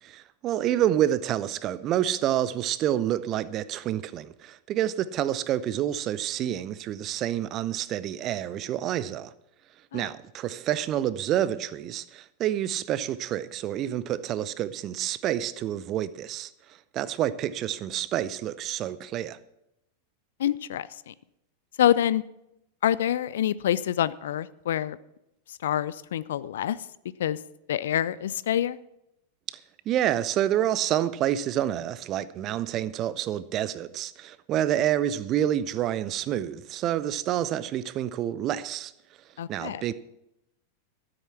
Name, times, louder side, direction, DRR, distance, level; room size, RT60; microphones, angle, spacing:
voice 1, 0.0-9.3 9.9-16.5 16.9-19.4 29.9-38.9 39.5-39.9, right 11 dB, 35° right, 0.6 m, -28 dB
voice 2, 20.4-21.1 21.8-22.2 22.8-25.0 25.6-26.8 27.2-27.4 27.7-28.8 39.4-39.8, left 11 dB, 60° left, 0.4 m, -26 dB
13.5 x 7.8 x 5.9 m
figure-of-eight pair, 90°, 0 cm